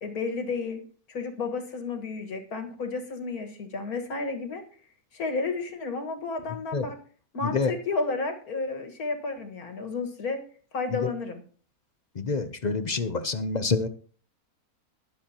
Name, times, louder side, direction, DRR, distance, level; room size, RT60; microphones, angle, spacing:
voice 1, 0.0-0.8 1.1-4.6 5.1-7.0 7.3-10.4 10.7-11.4, left 4 dB, 80° left, 4 dB, 2.2 m, -32 dB
voice 2, 12.2-13.9, left 4 dB, 40° left, 10 dB, 0.6 m, -27 dB
21.5 x 7.3 x 2.9 m, 0.43 s
omnidirectional pair, 1.5 m